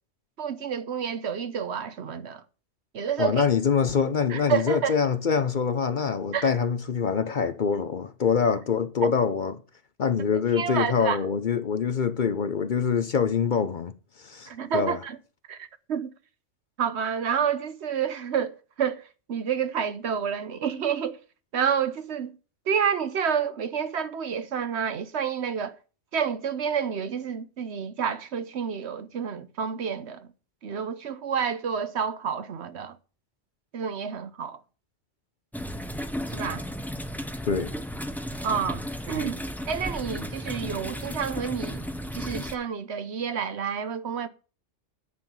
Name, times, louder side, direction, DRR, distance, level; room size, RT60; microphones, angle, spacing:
voice 1, 0.4-2.4 2.9-3.5 4.3-5.0 6.3-6.5 9.0-9.1 10.3-11.2 14.5-15.2 15.5-16.1 16.8-19.0 19.3-21.2 21.5-22.4 22.7-25.8 26.1-30.3 30.6-33.0 33.7-34.6 36.3-36.6 38.4-38.8 39.1-39.4 39.7-41.8 42.1-44.3, right 7 dB, 65° right, 1.1 m, -29 dB
voice 2, 3.2-9.6 10.0-13.9 14.2-15.0 37.5-37.7, left 6 dB, 50° left, 0.8 m, -25 dB
sound 1, 35.5-42.5, equal, ahead, 0.7 m, -34 dB
9.9 x 5.7 x 7.3 m
omnidirectional pair, 1.2 m